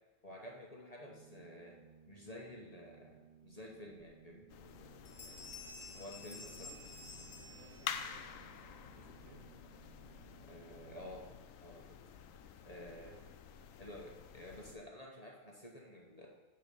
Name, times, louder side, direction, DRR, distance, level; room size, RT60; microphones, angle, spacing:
voice 1, 0.2-1.8 2.1-4.5 5.2-5.4 5.9-6.7 10.4-11.3 11.6-12.0 12.6-13.1 13.8-16.3, left 1 dB, 30° left, -1 dB, 1.2 m, -51 dB
Organ, 0.9-11.6, right 8 dB, 40° right, 1.1 m, -62 dB
Bell, 4.0-4.1 4.5-4.8 5.0-8.2, left 3 dB, 50° left, 1.4 m, -52 dB
sound 1, 4.5-14.8, left 8 dB, 70° left, 1.0 m, -50 dB
voice 2, 5.2-5.6 6.5-9.4 12.9-13.2 13.6-13.7, right 1 dB, 70° right, -2 dB, 2.2 m, -63 dB
9.9 x 4.6 x 7.0 m, 1.2 s
omnidirectional pair, 1.5 m